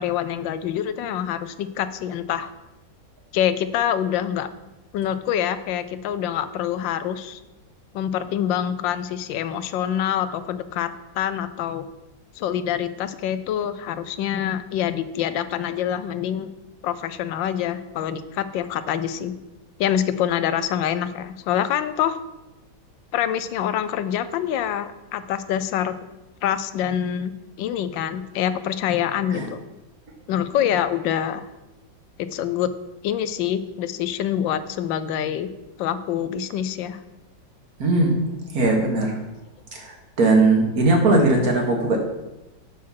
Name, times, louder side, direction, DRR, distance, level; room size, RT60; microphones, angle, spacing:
voice 1, 0.0-2.5 3.3-4.5 4.9-7.4 7.9-11.9 12.4-16.5 16.8-19.4 19.8-22.2 23.1-26.0 26.4-27.3 27.6-29.6 30.3-31.5 32.2-32.7 33.0-35.5 35.8-37.0, left 10 dB, 80° left, 12 dB, 1.3 m, -25 dB
voice 2, 37.8-38.2 38.5-39.2 39.7-42.0, right 2 dB, 55° right, 1 dB, 1.8 m, -19 dB
7.2 x 6.4 x 5.8 m, 1.0 s
omnidirectional pair, 2.0 m